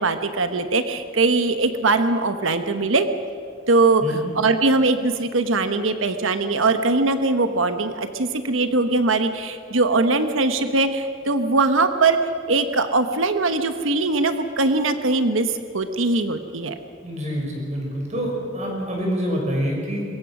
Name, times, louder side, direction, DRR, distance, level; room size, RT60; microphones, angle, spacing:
voice 1, 0.0-3.1 3.7-4.0 4.4-12.2 12.5-16.8, right 3 dB, 80° right, 9 dB, 1.1 m, -21 dB
voice 2, 17.0-20.0, equal, 35° right, -1 dB, 5.8 m, -26 dB
23.0 x 21.5 x 6.1 m, 2.3 s
head